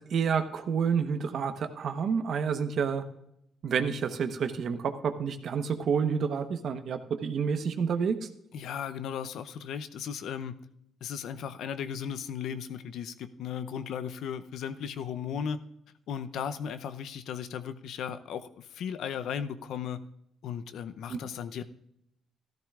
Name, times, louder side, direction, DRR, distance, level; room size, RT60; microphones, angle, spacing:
voice 1, 0.1-3.0 3.6-8.2 21.1-21.2, right 6 dB, 60° right, 9 dB, 1.0 m, -29 dB
voice 2, 8.5-10.6 11.0-15.6 16.1-20.0 20.4-21.6, left 8 dB, 75° left, 11 dB, 0.6 m, -36 dB
14.0 x 13.0 x 2.5 m, 0.78 s
cardioid pair, 90°, 0 cm